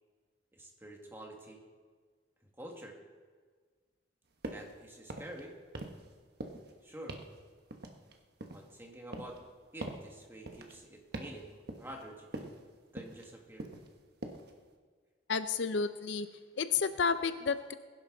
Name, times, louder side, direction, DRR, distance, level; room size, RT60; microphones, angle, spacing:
voice 1, 0.5-1.6 2.6-3.0 4.5-5.5 6.8-7.2 8.5-9.4 9.7-12.5 12.9-13.7, right 1 dB, 10° right, 0 dB, 1.9 m, -48 dB
sound 1, 4.4-4.7 5.0-5.4 5.7-6.1 6.4-6.7 7.1-7.4 7.7-8.7 9.1-9.4 9.8-10.1 10.5-10.7 11.1-11.4 11.7-12.0 12.3-12.6 13.0-13.3 13.6-13.9 14.2-14.5, right 1 dB, 55° right, 1.3 m, -43 dB
voice 2, 15.3-16.3 16.5-17.7, left 5 dB, 65° left, 11 dB, 0.6 m, -31 dB
21.0 x 11.0 x 3.9 m, 1.5 s
head